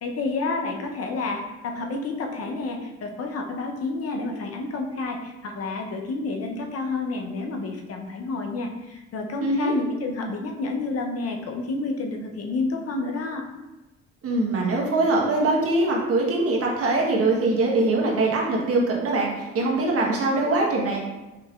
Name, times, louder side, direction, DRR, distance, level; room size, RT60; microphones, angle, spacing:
voice 1, 0.0-13.4, left 3 dB, 50° left, 2 dB, 0.8 m, -30 dB
voice 2, 9.4-9.7 14.2-21.0, right 2 dB, 50° right, -2 dB, 1.2 m, -22 dB
4.8 x 3.0 x 2.4 m, 1.1 s
supercardioid pair, 60°, 30 cm